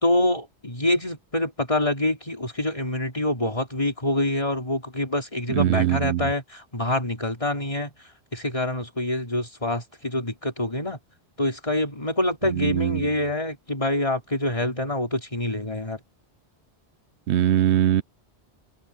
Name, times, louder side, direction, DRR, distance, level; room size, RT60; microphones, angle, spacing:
voice 1, 0.0-7.9 8.3-11.0 11.4-16.0, left 1 dB, 30° left, 3.7 m, -26 dB
voice 2, 5.5-6.2 12.5-13.1 17.3-18.0, right 11 dB, 80° right, 0.9 m, -21 dB
omnidirectional pair, 1.2 m